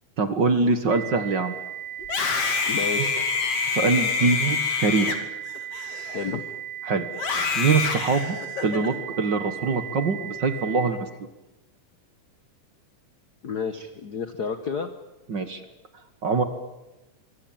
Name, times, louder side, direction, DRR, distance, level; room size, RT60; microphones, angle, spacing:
voice 1, 0.2-1.5 3.0-3.1 3.7-5.2 6.9-7.1 7.6-8.4 8.6-11.0 15.3-15.6 16.2-16.4, right 4 dB, 45° right, 9 dB, 1.7 m, -23 dB
sound 1, 0.9-10.9, right 11 dB, 80° right, 3.4 m, -37 dB
Screaming, 2.0-6.5 7.1-8.9, left 5 dB, 50° left, 3.4 m, -27 dB
voice 2, 2.7-3.1 6.1-6.4 13.4-14.9, left 5 dB, 80° left, 9 dB, 0.8 m, -30 dB
24.0 x 23.5 x 9.0 m, 1.0 s
omnidirectional pair, 3.7 m